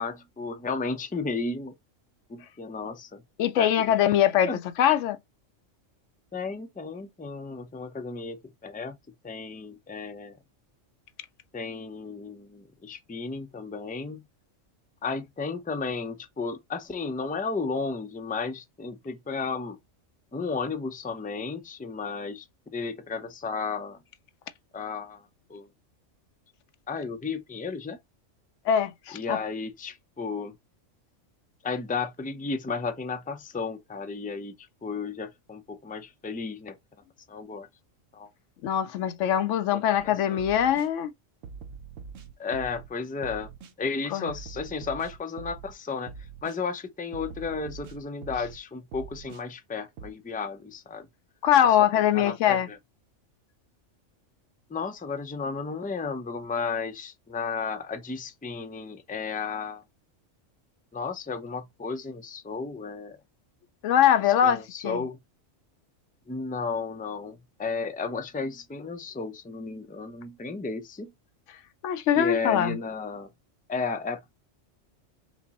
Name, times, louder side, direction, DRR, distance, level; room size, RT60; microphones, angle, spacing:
voice 1, 0.0-1.7 2.3-3.2 3.6-3.9 4.4-4.6 6.3-9.0 9.2-10.4 11.5-14.3 15.0-19.8 20.3-24.0 24.7-25.7 26.9-28.0 29.1-30.5 31.6-34.5 34.8-36.7 37.3-37.7 38.1-38.3 39.7-40.4 42.4-43.5 43.8-46.1 46.4-51.1 51.8-51.9 52.1-52.8 54.7-59.8 60.9-63.2 64.4-65.2 66.3-71.1 72.2-73.3 73.7-74.4, left 4 dB, 15° left, 0.3 m, -33 dB
voice 2, 3.4-5.2 28.7-29.4 38.6-41.1 44.1-44.3 51.4-52.7 63.8-65.0 71.8-72.8, left 10 dB, 75° left, 0.9 m, -22 dB
sound 1, 40.0-40.1 40.4-40.9 41.4-42.9 43.2-43.7 44.3-45.7 46.1-46.6 47.1-48.6 48.9-49.4 50.0-50.1, right 5 dB, 80° right, 1.1 m, -43 dB
5.1 x 2.1 x 4.0 m
omnidirectional pair, 1.3 m